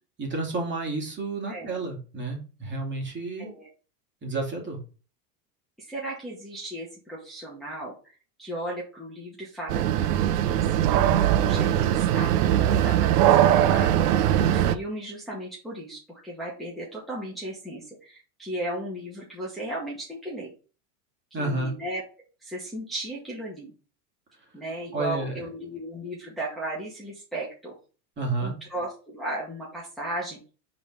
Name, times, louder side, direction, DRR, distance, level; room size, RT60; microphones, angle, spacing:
voice 1, 0.2-3.5 4.2-4.8 21.3-21.7 24.9-25.4 28.2-28.5, right 3 dB, 25° right, 0 dB, 2.5 m, -30 dB
voice 2, 3.4-3.7 5.8-10.2 10.5-20.5 21.3-22.0 22.4-23.7 24.5-27.7 28.4-30.5, right 1 dB, ahead, -6 dB, 1.8 m, -36 dB
sound 1, 9.7-14.8, right 11 dB, 80° right, 0.7 m, -21 dB
5.0 x 3.9 x 4.9 m, 0.36 s
supercardioid pair, 125°, 46 cm